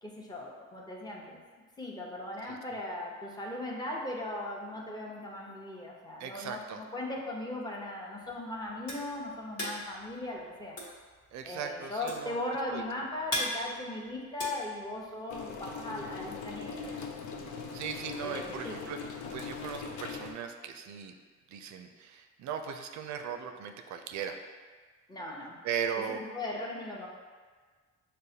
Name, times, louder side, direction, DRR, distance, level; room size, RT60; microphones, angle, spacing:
voice 1, 0.0-1.4 1.8-10.8 11.4-17.2 18.2-18.8 25.1-25.6 26.1-27.1, left 1 dB, 15° left, -3 dB, 0.8 m, -38 dB
voice 2, 6.2-6.8 11.3-12.4 12.7-12.8 17.7-19.0 19.3-21.1 21.5-24.4 25.6-26.2, right 7 dB, 70° right, 5 dB, 0.5 m, -38 dB
sound 1, 8.2-15.4, left 1 dB, 55° left, 1.3 m, -38 dB
sound 2, 15.3-20.3, left 5 dB, 80° left, 0.5 m, -40 dB
6.4 x 2.1 x 2.8 m, 1.5 s
cardioid pair, 90°, 30 cm